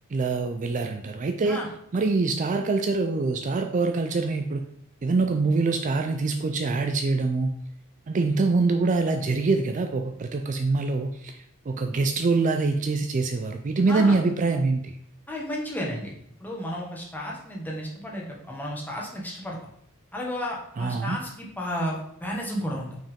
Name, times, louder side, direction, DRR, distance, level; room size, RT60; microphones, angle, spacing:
voice 1, 0.1-1.6 1.9-4.6 5.0-7.5 8.1-11.4 11.7-15.0 20.8-21.2, right 3 dB, 35° right, 6 dB, 0.4 m, -24 dB
voice 2, 15.3-16.1 16.4-19.6 20.1-23.0, equal, 10° left, -2 dB, 1.3 m, -32 dB
5.8 x 4.5 x 3.6 m, 0.71 s
head